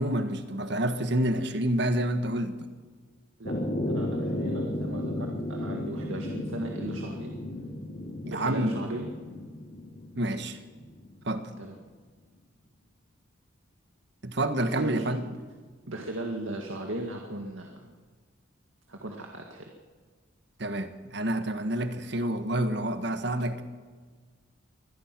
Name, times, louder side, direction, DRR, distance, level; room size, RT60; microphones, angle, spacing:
voice 1, 0.0-2.6 8.2-8.8 10.2-10.6 11.2-11.5 14.2-15.2 20.6-23.6, right 1 dB, 60° right, 9 dB, 1.5 m, -28 dB
sound 1, 3.5-11.2, left 1 dB, 45° left, 2.7 m, -34 dB
voice 2, 3.9-7.4 8.3-9.1 11.5-11.8 14.6-15.4 15.8-17.9 18.9-19.6, right 1 dB, 80° right, 2 dB, 2.0 m, -37 dB
24.0 x 18.0 x 6.1 m, 1.5 s
head